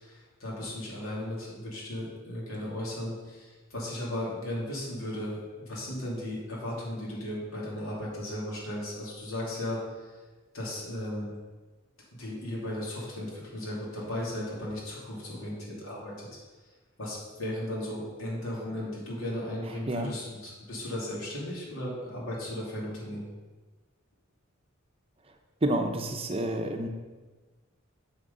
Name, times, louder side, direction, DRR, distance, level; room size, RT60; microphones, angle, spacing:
voice 1, 0.0-9.8 10.5-11.3 12.1-16.4 17.0-23.3, left 1 dB, 85° left, -4 dB, 2.7 m, -36 dB
voice 2, 19.6-20.1 25.6-26.9, right 1 dB, 30° right, 4 dB, 0.6 m, -29 dB
6.5 x 6.4 x 5.4 m, 1.3 s
head